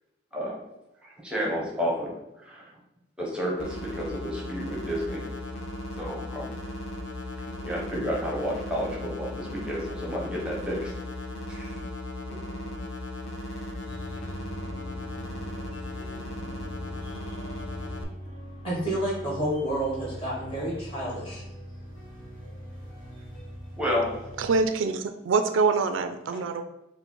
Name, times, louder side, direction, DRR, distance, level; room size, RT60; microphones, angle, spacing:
voice 1, 1.0-2.7 3.2-5.3 6.0-6.5 7.6-11.0 11.5-11.7 23.8-24.3, equal, 5° right, -3 dB, 0.7 m, -31 dB
sound 1, 3.6-18.0, left 1 dB, 70° left, 0.5 m, -37 dB
sound 2, 13.8-24.6, equal, 45° left, 1.1 m, -42 dB
voice 2, 18.6-21.4, right 1 dB, 25° left, -5 dB, 1.4 m, -29 dB
voice 3, 24.4-26.6, right 4 dB, 80° right, 8 dB, 0.4 m, -25 dB
4.6 x 2.1 x 3.8 m, 0.93 s
head